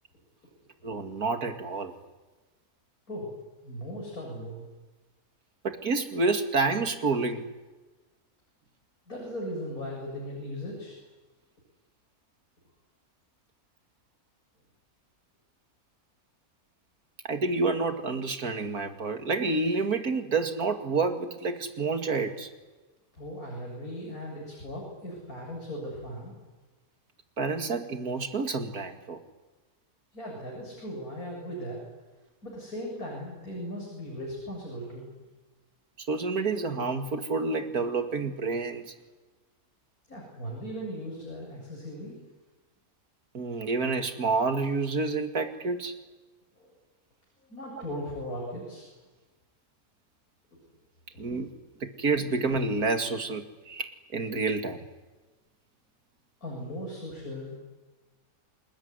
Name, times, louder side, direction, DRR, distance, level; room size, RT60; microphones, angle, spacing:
voice 1, 0.8-1.9 5.6-7.4 17.2-22.5 27.4-29.2 36.0-38.9 43.3-45.9 47.7-47.8 51.2-51.5 51.8-54.8, right 3 dB, 90° right, 6 dB, 2.7 m, -29 dB
voice 2, 3.6-4.6 9.1-11.0 23.2-26.3 30.1-31.8 32.4-35.1 40.1-42.2 46.6-46.7 47.4-48.9 51.3-51.4 56.4-57.6, equal, 75° left, -2 dB, 8.3 m, -38 dB
27.5 x 21.0 x 9.7 m, 1.2 s
omnidirectional pair, 1.5 m